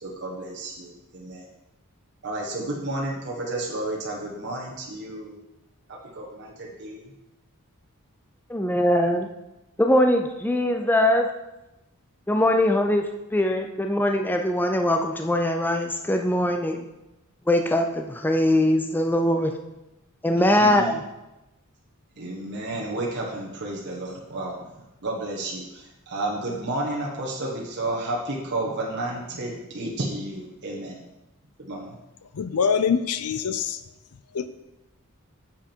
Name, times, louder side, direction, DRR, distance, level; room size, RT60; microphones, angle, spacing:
voice 1, 0.0-1.5 2.2-5.4 5.9-7.1 20.4-21.0 22.2-31.0 31.6-32.0, right 2 dB, 50° right, -3 dB, 1.4 m, -32 dB
voice 2, 8.5-9.3 9.8-11.3 12.3-16.9 17.5-19.6 20.2-20.9, left 1 dB, 10° left, 4 dB, 0.5 m, -22 dB
voice 3, 32.3-33.8 34.3-34.5, left 6 dB, 80° left, 11 dB, 0.5 m, -24 dB
8.5 x 7.3 x 4.6 m, 0.97 s
head